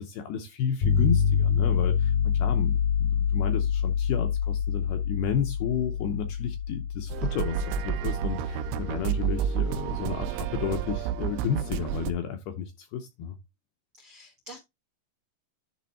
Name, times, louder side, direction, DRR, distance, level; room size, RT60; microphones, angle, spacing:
voice 1, 0.0-13.4, left 7 dB, 75° left, 2.4 m, -32 dB
sound 1, 0.8-9.8, left 7 dB, 60° left, 5.3 m, -27 dB
sound 2, 7.1-12.1, right 9 dB, 90° right, 3.1 m, -30 dB
voice 2, 13.9-14.6, equal, 75° right, 1.2 m, -47 dB
10.5 x 3.7 x 4.2 m
omnidirectional pair, 5.3 m